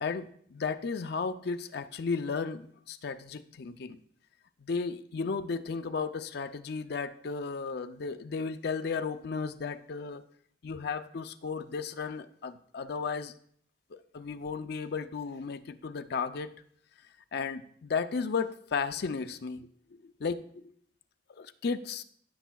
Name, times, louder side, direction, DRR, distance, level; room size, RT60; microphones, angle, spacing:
voice 1, 0.0-4.0 4.6-10.2 10.6-13.3 13.9-16.5 17.3-19.7 20.0-20.6 21.4-22.0, left 5 dB, 55° left, 10 dB, 0.4 m, -34 dB
14.5 x 7.0 x 2.3 m, 0.62 s
head